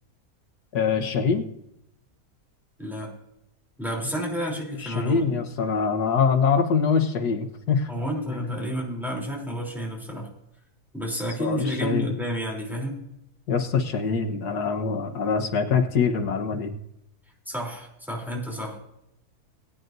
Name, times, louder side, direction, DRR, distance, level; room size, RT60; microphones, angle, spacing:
voice 1, 0.7-1.5 4.8-7.9 11.4-12.1 13.5-16.7, left 5 dB, 85° left, 5 dB, 1.8 m, -24 dB
voice 2, 2.8-3.1 3.8-5.4 7.9-10.3 10.9-13.0 17.5-18.8, equal, ahead, -2 dB, 3.4 m, -30 dB
21.5 x 9.3 x 2.7 m, 0.82 s
omnidirectional pair, 1.6 m